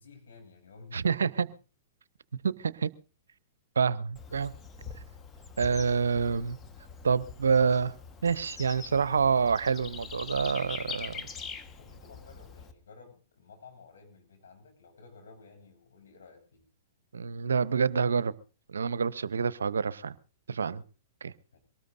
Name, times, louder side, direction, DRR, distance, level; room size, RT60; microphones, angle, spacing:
voice 1, 0.0-1.5 11.8-16.7 21.5-21.6, left 4 dB, 75° left, 6.8 m, -53 dB
voice 2, 0.9-1.5 2.4-2.9 3.8-4.5 5.6-6.6 7.0-7.9 8.2-11.3 17.1-18.3 18.7-20.1 20.5-20.8 21.2-21.3, right 6 dB, 80° right, 0.6 m, -27 dB
Bird / Insect, 4.2-12.7, left 5 dB, 20° left, 1.3 m, -43 dB
23.0 x 18.5 x 2.6 m
hypercardioid pair, 115°, 0 cm